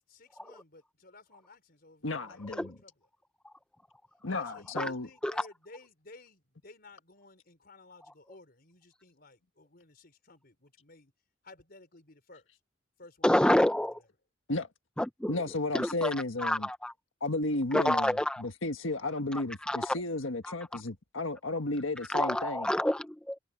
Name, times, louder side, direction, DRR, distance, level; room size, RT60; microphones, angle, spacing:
voice 1, 0.1-2.9 4.3-11.1 11.4-12.5 13.0-13.5 15.8-15.9, left 2 dB, 50° left, 4.5 m, -55 dB
voice 2, 2.0-2.7 4.2-5.1 14.5-14.7 15.3-16.7 17.2-18.1 18.4-22.7, left 2 dB, 90° left, 1.6 m, -33 dB
voice 3, 13.2-14.0 15.0-15.4 15.7-16.1 16.4-16.9 17.7-18.4 19.3-20.0 20.4-20.8 22.1-23.4, left 1 dB, 5° left, 0.4 m, -28 dB
head